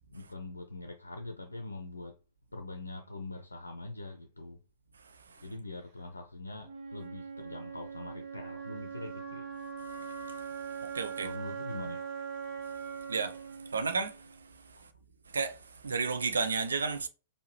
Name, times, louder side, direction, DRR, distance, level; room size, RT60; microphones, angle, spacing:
voice 1, 0.1-2.2 2.5-4.6 5.4-9.5 11.2-12.3, left 2 dB, 80° left, 0.5 m, -43 dB
Wind instrument woodwind instrument, 6.6-14.7, right 6 dB, 40° right, 0.9 m, -41 dB
voice 2, 9.9-11.3 13.1-14.3 15.3-17.1, right 4 dB, 70° right, 0.6 m, -33 dB
4.6 x 2.7 x 3.0 m
figure-of-eight pair, 105°, 0 cm